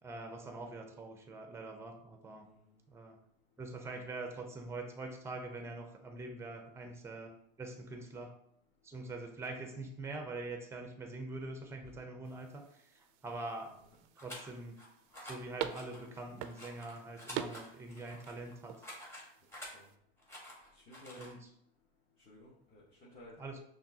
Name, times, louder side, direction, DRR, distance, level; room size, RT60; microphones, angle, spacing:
voice 1, 0.0-2.5 2.9-3.2 3.6-8.4 8.8-13.8 14.2-14.8 15.2-18.9 21.2-21.5 23.4-23.6, right 2 dB, 10° right, 4 dB, 0.6 m, -44 dB
sound 1, 12.2-20.0, right 10 dB, 55° right, 0.4 m, -47 dB
sound 2, 14.2-14.8 15.1-15.4 15.7-19.7 20.2-21.3, left 1 dB, 10° left, 1.3 m, -50 dB
voice 2, 20.7-21.3 22.3-23.4, left 1 dB, 30° left, -5 dB, 1.1 m, -55 dB
5.7 x 2.4 x 2.7 m, 0.72 s
hypercardioid pair, 105°, 29 cm